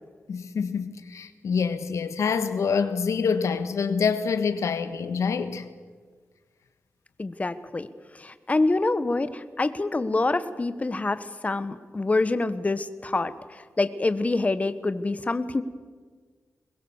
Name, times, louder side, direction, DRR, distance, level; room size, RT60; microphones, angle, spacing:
voice 1, 0.3-5.7, left 5 dB, 85° left, 1.4 m, -26 dB
voice 2, 7.2-7.9 8.2-15.6, left 2 dB, 30° left, 1.2 m, -26 dB
22.5 x 21.0 x 7.2 m
wide cardioid pair, 90°, 5 cm